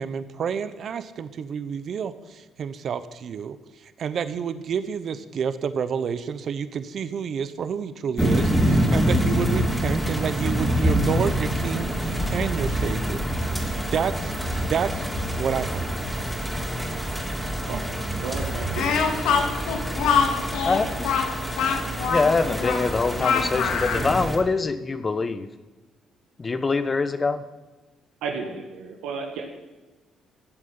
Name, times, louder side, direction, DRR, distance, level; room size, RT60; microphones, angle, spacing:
voice 1, 0.0-3.6 4.0-13.2 13.9-14.3 14.7-15.1 15.4-15.8, right 7 dB, 60° right, 13 dB, 0.9 m, -29 dB
sound 1, 8.2-24.4, equal, ahead, 3.4 m, -26 dB
voice 2, 18.2-19.2 28.2-29.4, right 5 dB, 85° right, 1 dB, 1.7 m, -33 dB
Speech, 18.7-24.1, left 6 dB, 80° left, 2.0 m, -24 dB
voice 3, 22.0-25.5 26.4-27.4, left 4 dB, 35° left, 12 dB, 1.2 m, -24 dB
14.0 x 7.6 x 9.5 m, 1.2 s
supercardioid pair, 70°, 0 cm